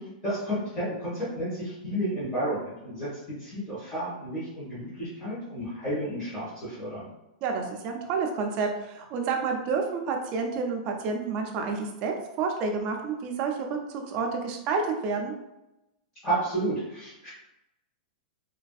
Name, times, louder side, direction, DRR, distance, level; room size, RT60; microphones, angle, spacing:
voice 1, 0.2-7.0 16.2-17.3, right 1 dB, 15° left, -13 dB, 0.9 m, -31 dB
voice 2, 7.4-15.3, right 4 dB, 25° right, 2 dB, 0.3 m, -29 dB
3.3 x 2.5 x 2.3 m, 0.93 s
supercardioid pair, 180°, 5 cm